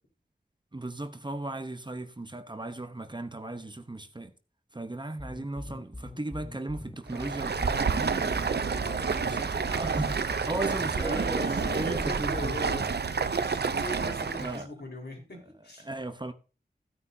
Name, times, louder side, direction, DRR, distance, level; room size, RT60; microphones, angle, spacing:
voice 1, 0.7-4.3 4.7-8.4 9.0-12.6 14.4-14.7 15.8-16.3, right 2 dB, 25° right, 0.9 m, -36 dB
sound 1, 5.2-13.2, left 1 dB, 10° left, 1.1 m, -42 dB
Stream, 7.1-14.6, right 5 dB, 80° right, 0.6 m, -29 dB
voice 2, 8.6-9.8 10.7-15.9, left 2 dB, 80° left, 4.4 m, -41 dB
15.5 x 9.7 x 2.7 m
wide cardioid pair, 60°, 17 cm